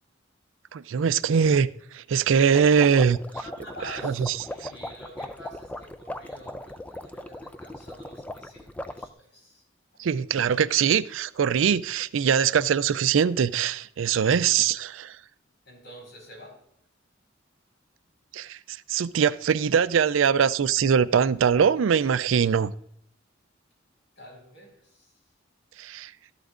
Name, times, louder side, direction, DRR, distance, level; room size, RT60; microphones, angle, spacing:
voice 1, 0.7-1.7 1.9-3.2 4.0-4.3 10.0-15.1 18.3-18.6 18.9-22.7 25.8-26.1, right 7 dB, 70° right, 0.4 m, -22 dB
sound 1, 2.5-9.1, left 1 dB, 5° left, 0.4 m, -38 dB
voice 2, 3.4-9.6 9.9-10.0 15.6-16.6 24.2-25.1, equal, 65° left, 4.7 m, -47 dB
13.5 x 11.5 x 2.5 m
head